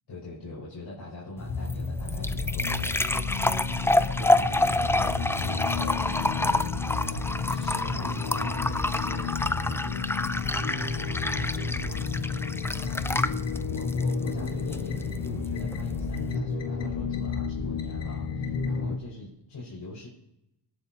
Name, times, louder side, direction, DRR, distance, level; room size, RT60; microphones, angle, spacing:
voice 1, 0.1-3.1 3.7-10.1 10.5-20.1, left 2 dB, 65° left, -7 dB, 5.1 m, -43 dB
sound 1, 1.4-16.3, left 2 dB, 5° left, 0.4 m, -29 dB
sound 2, 1.5-19.0, left 5 dB, 85° left, 1.5 m, -32 dB
20.5 x 9.0 x 2.9 m, 0.82 s
cardioid pair, 95°, 43 cm